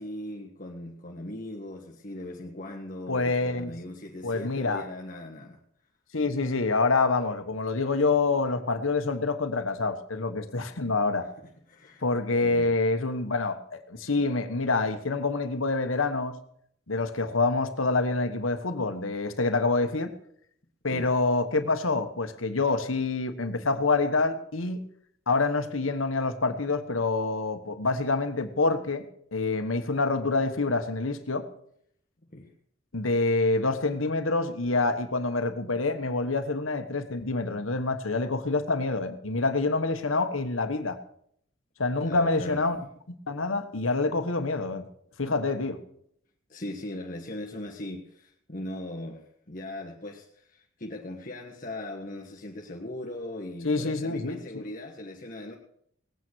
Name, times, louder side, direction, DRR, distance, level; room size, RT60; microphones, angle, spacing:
voice 1, 0.0-5.6 11.7-12.0 12.4-12.7 20.9-21.1 32.3-32.5 42.0-42.6 46.5-55.6, left 1 dB, 40° left, -1 dB, 1.4 m, -39 dB
voice 2, 3.1-3.7 4.2-4.8 6.1-11.2 12.0-16.4 16.9-20.1 20.8-24.8 25.3-29.1 29.3-31.5 32.9-41.0 41.8-42.8 43.3-44.9 45.2-45.8 53.6-54.6, left 3 dB, 85° left, 8 dB, 1.3 m, -27 dB
19.0 x 9.3 x 6.3 m, 0.69 s
head